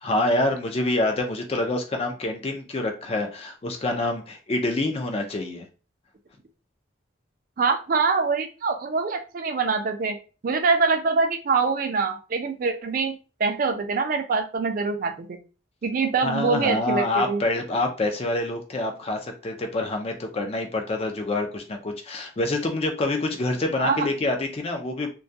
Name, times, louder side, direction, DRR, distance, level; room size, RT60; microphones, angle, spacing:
voice 1, 0.0-5.7 16.2-25.1, left 2 dB, 30° left, 4 dB, 0.3 m, -26 dB
voice 2, 7.6-10.2 10.4-15.4 15.8-17.4 23.8-24.1, right 4 dB, 45° right, 5 dB, 0.3 m, -24 dB
2.2 x 2.2 x 2.6 m, 0.34 s
head